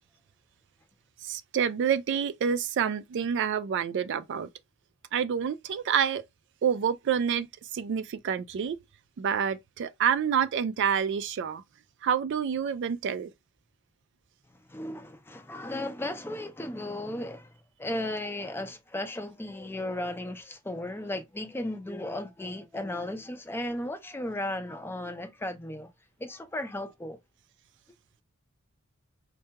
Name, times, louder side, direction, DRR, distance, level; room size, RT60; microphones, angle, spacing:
voice 1, 1.2-4.5 5.1-6.2 6.6-7.5 7.7-8.8 9.2-11.6 12.0-13.3, right 7 dB, 55° right, 0.3 m, -28 dB
voice 2, 14.7-17.5 17.8-25.9 26.2-27.2, left 1 dB, 10° left, 0.4 m, -35 dB
4.5 x 2.2 x 2.8 m
head